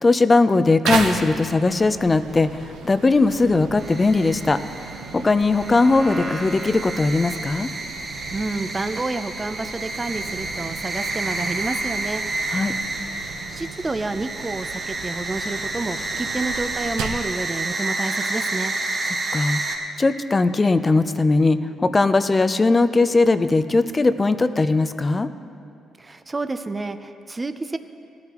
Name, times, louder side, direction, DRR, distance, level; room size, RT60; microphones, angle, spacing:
voice 1, 0.0-4.6 5.1-7.7 12.5-12.7 19.3-19.6 20.0-25.3, left 3 dB, 25° left, 11 dB, 0.5 m, -19 dB
sound 1, 0.8-17.3, right 5 dB, 90° right, 0.9 m, -35 dB
sound 2, 3.8-19.8, right 2 dB, 40° right, 1.7 m, -30 dB
voice 2, 8.3-12.4 13.5-18.7 26.0-27.8, right 3 dB, 20° right, 9 dB, 0.5 m, -29 dB
18.0 x 11.5 x 3.0 m, 2.5 s
cardioid pair, 90°, 0 cm